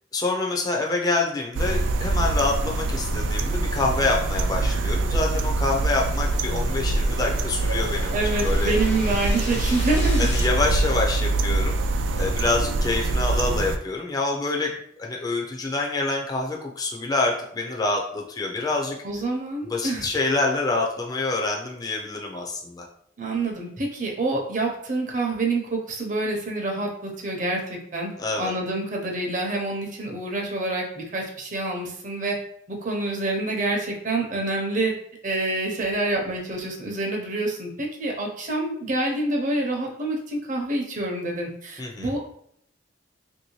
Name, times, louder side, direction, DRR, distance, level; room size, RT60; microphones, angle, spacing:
voice 1, 0.1-8.2 8.4-8.7 9.6-9.8 10.2-11.7 12.2-14.7 15.0-19.0 19.6-22.8 28.2-28.5 41.8-42.1, left 2 dB, 20° left, -1 dB, 0.4 m, -26 dB
sound 1, 1.5-13.8, right 2 dB, 85° right, 0.3 m, -24 dB
sound 2, 4.9-10.4, left 2 dB, 70° left, 0.7 m, -40 dB
voice 2, 8.1-10.3 19.0-20.1 23.2-28.1 28.4-32.4 32.7-34.9 35.2-42.2, right 2 dB, 45° right, 0 dB, 0.7 m, -27 dB
3.0 x 2.7 x 3.0 m, 0.69 s
head